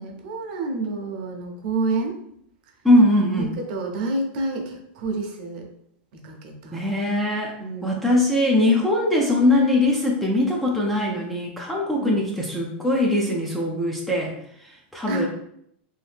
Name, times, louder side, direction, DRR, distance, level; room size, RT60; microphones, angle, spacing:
voice 1, 0.0-2.2 3.4-5.7 6.1-6.8 7.6-8.0 12.0-12.3 15.1-15.3, right 2 dB, 55° right, 2 dB, 0.7 m, -29 dB
voice 2, 2.8-3.5 6.7-7.5 7.8-14.3 14.9-15.3, left 1 dB, ahead, -3 dB, 0.4 m, -21 dB
2.7 x 2.7 x 3.3 m, 0.73 s
supercardioid pair, 165°, 6 cm